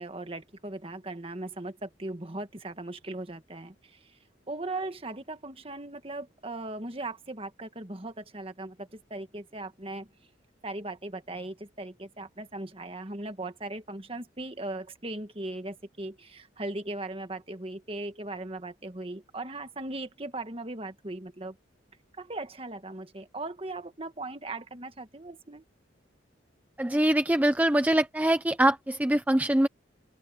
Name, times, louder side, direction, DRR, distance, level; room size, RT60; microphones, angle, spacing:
voice 1, 0.0-4.0 4.5-10.1 10.6-21.6 22.2-25.6, right 2 dB, 30° right, 1.7 m, -38 dB
voice 2, 26.8-29.7, right 1 dB, 10° right, 0.6 m, -23 dB
head